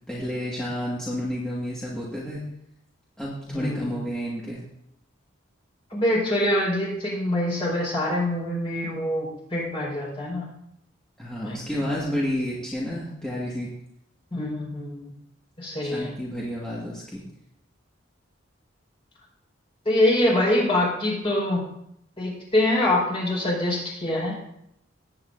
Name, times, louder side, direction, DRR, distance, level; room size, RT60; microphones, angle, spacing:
voice 1, 0.1-2.4 3.2-4.6 11.2-13.7 15.8-17.2, equal, 5° left, -7 dB, 1.7 m, -30 dB
voice 2, 3.5-4.0 5.9-10.5 11.4-11.6 14.3-15.1 15.6-16.1 19.8-21.6 22.2-24.4, left 1 dB, 30° left, -4 dB, 4.4 m, -24 dB
18.5 x 9.0 x 2.6 m, 0.77 s
head